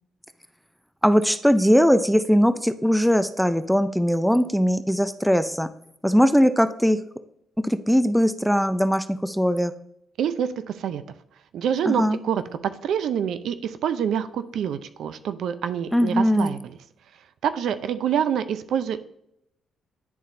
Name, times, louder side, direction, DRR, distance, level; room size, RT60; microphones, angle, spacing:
voice 1, 1.0-5.7 6.0-7.0 7.6-9.7 11.9-12.2 15.9-16.6, equal, ahead, 11 dB, 0.4 m, -20 dB
voice 2, 10.2-11.0 11.5-16.6 17.4-19.0, right 8 dB, 70° right, 12 dB, 0.5 m, -26 dB
11.0 x 4.0 x 2.6 m, 0.74 s
cardioid pair, 90°, 0 cm